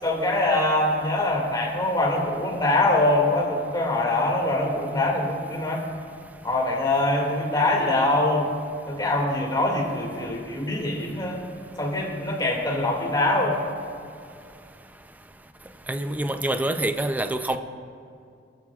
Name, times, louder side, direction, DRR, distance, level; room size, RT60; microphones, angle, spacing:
voice 1, 0.0-5.8 6.4-8.5 8.9-11.4 11.8-13.6, left 2 dB, 25° left, -2 dB, 2.2 m, -23 dB
voice 2, 15.9-17.6, right 1 dB, 10° right, 8 dB, 0.5 m, -26 dB
20.0 x 13.0 x 2.4 m, 2.5 s
head